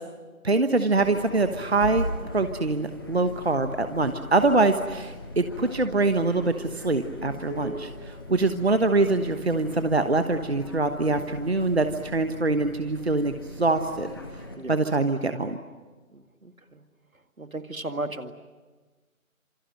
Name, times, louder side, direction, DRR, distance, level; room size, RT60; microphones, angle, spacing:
voice 1, 0.4-2.0 2.3-14.1 14.7-15.6, right 3 dB, 45° right, 8 dB, 1.3 m, -24 dB
sound 1, 1.0-14.6, left 1 dB, 15° left, 1.9 m, -39 dB
voice 2, 16.1-16.8 17.4-18.3, right 2 dB, 75° right, 8 dB, 2.2 m, -35 dB
27.5 x 25.5 x 7.9 m, 1.3 s
figure-of-eight pair, 165°, 42 cm